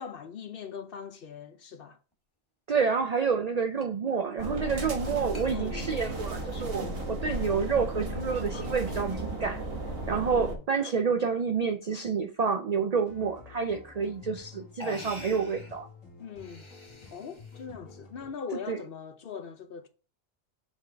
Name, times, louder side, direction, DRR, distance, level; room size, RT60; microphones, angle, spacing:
voice 1, 0.0-2.0 5.5-5.9 10.2-10.6 16.2-16.7 17.1-19.9, left 6 dB, 55° left, 0.7 m, -41 dB
sound 1, 2.1-2.2 3.8-3.9 4.3-4.4 5.3-5.5 5.9-6.7 7.2-7.3 7.9-8.2 8.5-8.8 10.0-10.5 11.3-11.7 13.6-13.7 14.4-14.5 14.8-15.8 16.3-17.7, left 1 dB, 25° left, 1.2 m, -46 dB
voice 2, 2.7-9.6 10.1-15.9 18.7-18.8, right 5 dB, 65° right, 0.4 m, -29 dB
sound 2, 4.4-10.5, right 1 dB, 50° right, 1.5 m, -34 dB
sound 3, 13.0-18.3, left 4 dB, 90° left, 2.0 m, -50 dB
7.2 x 3.9 x 3.3 m
omnidirectional pair, 1.3 m